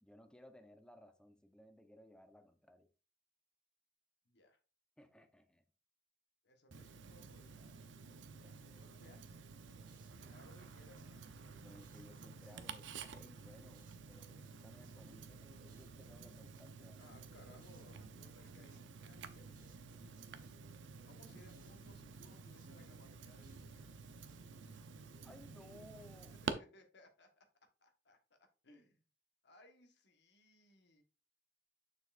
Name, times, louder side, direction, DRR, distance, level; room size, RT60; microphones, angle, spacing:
voice 1, 0.0-2.9 5.0-5.6 8.5-9.2 11.6-17.1 25.2-26.4, left 1 dB, 5° left, 0.8 m, -61 dB
voice 2, 4.2-4.6 6.4-9.2 10.3-11.3 17.0-20.0 21.0-23.9 26.4-29.0 29.4-31.0, left 1 dB, 65° left, 1.3 m, -65 dB
Tick-tock, 6.7-26.5, right 5 dB, 80° right, 0.7 m, -51 dB
sound 1, 9.7-25.2, right 3 dB, 50° right, 1.4 m, -70 dB
7.0 x 6.6 x 2.5 m
head